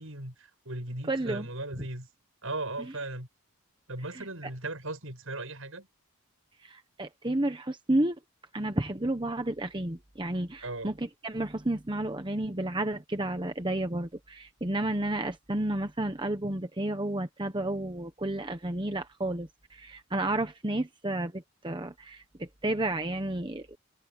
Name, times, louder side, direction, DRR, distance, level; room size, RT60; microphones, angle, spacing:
voice 1, 0.0-2.1 2.4-3.3 3.9-5.9 10.6-10.9, right 2 dB, 65° right, 7.6 m, -37 dB
voice 2, 1.1-1.5 4.1-4.3 6.6-8.2 8.5-23.8, right 1 dB, 20° right, 1.1 m, -31 dB
head